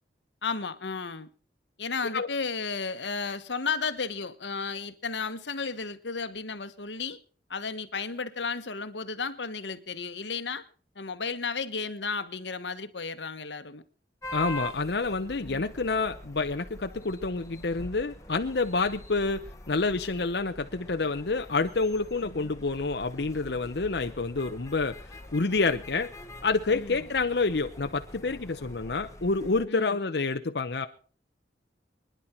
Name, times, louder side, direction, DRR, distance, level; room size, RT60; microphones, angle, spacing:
voice 1, 0.4-1.3 1.8-7.2 7.5-10.6 10.9-13.8 15.4-15.7 22.2-22.5 26.7-27.1 29.7-30.0, left 4 dB, 85° left, 1.4 m, -33 dB
sound 1, 14.2-29.7, left 1 dB, 20° left, 1.3 m, -44 dB
voice 2, 14.3-19.4 19.7-25.0 25.3-26.1 26.4-30.9, left 3 dB, 65° left, 0.8 m, -28 dB
25.0 x 10.5 x 4.5 m
head